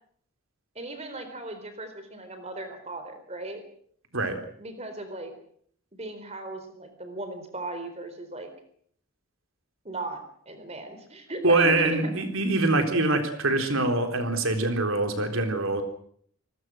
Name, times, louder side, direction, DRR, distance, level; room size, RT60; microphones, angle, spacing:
voice 1, 0.8-3.6 4.6-5.3 5.9-8.5 9.8-12.4, right 2 dB, 30° right, 8 dB, 4.1 m, -37 dB
voice 2, 11.4-15.8, right 2 dB, 65° right, 6 dB, 3.9 m, -24 dB
27.0 x 19.5 x 6.4 m, 0.63 s
head